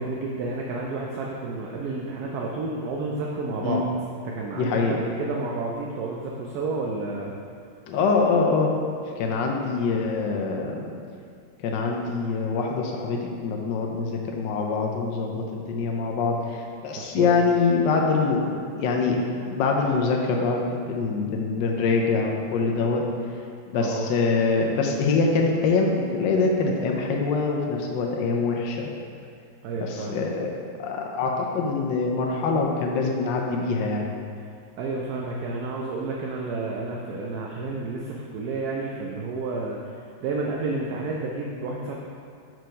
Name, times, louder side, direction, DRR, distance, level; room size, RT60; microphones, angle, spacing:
voice 1, 0.0-3.9 4.2-7.3 16.9-17.3 23.7-24.1 29.6-30.2 34.8-39.8 40.2-41.9, right 3 dB, 70° right, -2 dB, 0.9 m, -30 dB
voice 2, 4.5-5.0 7.9-8.7 9.0-10.9 11.6-19.2 19.5-23.1 23.7-28.9 29.8-30.5 30.8-34.1, left 4 dB, 75° left, 0 dB, 1.2 m, -24 dB
4.7 x 4.5 x 5.2 m, 2.3 s
omnidirectional pair, 2.1 m